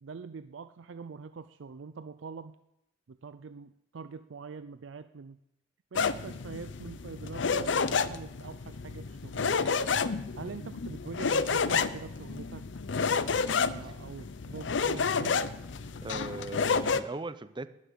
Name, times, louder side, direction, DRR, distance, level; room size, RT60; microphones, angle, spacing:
voice 1, 0.0-2.6 3.1-5.4 5.9-9.7 10.4-12.7 13.6-15.4, right 5 dB, 75° right, 12 dB, 0.5 m, -44 dB
sound 1, 5.9-17.0, left 5 dB, 70° left, 0.6 m, -30 dB
voice 2, 15.8-17.7, right 2 dB, 25° right, 13 dB, 0.6 m, -39 dB
12.5 x 7.5 x 10.0 m, 0.86 s
head